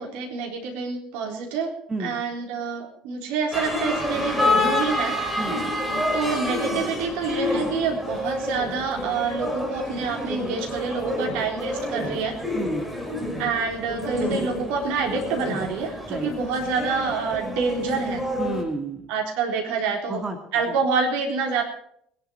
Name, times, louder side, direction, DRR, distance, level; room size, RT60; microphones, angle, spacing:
voice 1, 0.0-1.7 2.0-5.2 6.1-12.4 13.4-18.2 19.1-20.2 20.5-21.6, right 5 dB, 65° right, 2 dB, 3.8 m, -27 dB
sound 1, 3.5-18.6, left 1 dB, 5° right, 4.9 m, -28 dB
voice 2, 12.5-12.8 16.1-16.3 18.4-19.1 20.1-20.4, right 2 dB, 25° right, 5 dB, 2.3 m, -30 dB
21.0 x 11.0 x 4.5 m, 0.66 s
figure-of-eight pair, 60°, 3 cm